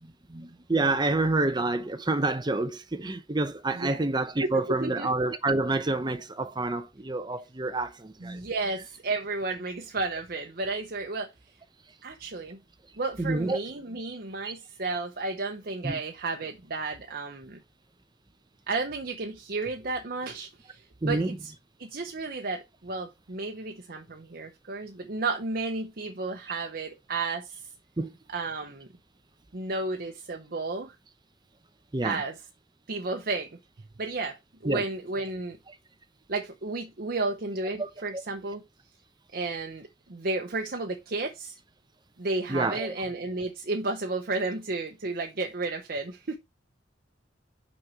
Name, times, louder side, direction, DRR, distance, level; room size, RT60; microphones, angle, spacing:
voice 1, 0.3-8.4 13.2-13.6 14.4-14.5 15.8-16.0 21.0-21.4 28.0-28.1 31.9-32.2 34.7-34.8 37.8-37.9 42.5-42.9, right 2 dB, 25° right, 0.8 m, -28 dB
voice 2, 3.7-4.1 4.4-5.1 8.2-11.3 12.0-12.6 13.0-17.6 18.7-21.5 21.8-27.6 28.3-28.9 29.5-30.9 32.0-32.4 32.9-33.5 34.0-34.4 34.6-35.6 36.3-38.6 39.3-41.6 42.2-46.4, right 3 dB, 55° right, 0.9 m, -32 dB
6.1 x 5.4 x 4.6 m
head